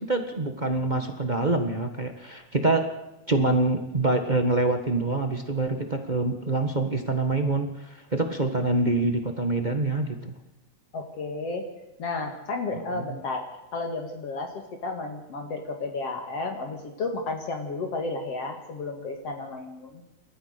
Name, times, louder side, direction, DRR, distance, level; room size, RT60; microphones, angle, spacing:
voice 1, 0.0-2.9 3.3-10.3 12.7-13.2, right 2 dB, 30° right, 5 dB, 0.8 m, -26 dB
voice 2, 10.9-11.7 12.0-20.0, left 3 dB, 55° left, 4 dB, 2.9 m, -32 dB
29.0 x 13.5 x 6.7 m, 0.98 s
omnidirectional pair, 3.4 m